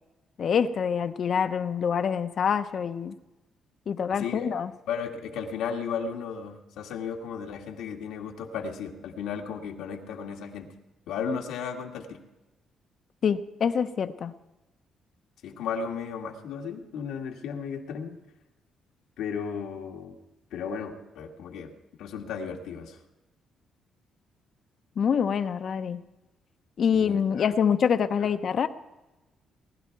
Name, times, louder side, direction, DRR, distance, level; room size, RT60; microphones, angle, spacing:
voice 1, 0.4-3.2 3.9-4.7 13.2-14.3 25.0-26.0 26.8-28.7, left 7 dB, 55° left, 10 dB, 0.9 m, -25 dB
voice 2, 4.2-4.5 4.9-10.7 11.1-12.2 15.4-18.2 19.2-20.2 20.5-21.7 22.0-23.0 26.9-27.5 28.2-28.3, left 6 dB, 85° left, 2 dB, 1.9 m, -35 dB
20.0 x 12.0 x 4.7 m, 1.0 s
cardioid pair, 90°, 0 cm